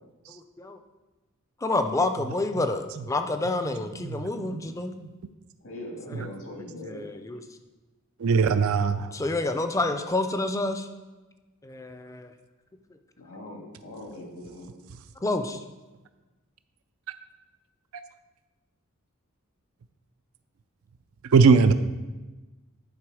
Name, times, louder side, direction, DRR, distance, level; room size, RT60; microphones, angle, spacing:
voice 1, 0.3-0.8 1.6-4.9 6.2-6.3 6.8-7.4 9.1-10.9 11.6-12.3 15.2-15.6, left 2 dB, 15° left, 8 dB, 0.4 m, -28 dB
voice 2, 4.0-4.6 8.2-9.1 21.3-21.7, right 5 dB, 75° right, 10 dB, 0.4 m, -20 dB
voice 3, 5.6-7.1 13.2-14.7, left 1 dB, 80° left, 0 dB, 1.9 m, -41 dB
10.5 x 4.2 x 4.8 m, 1.2 s
head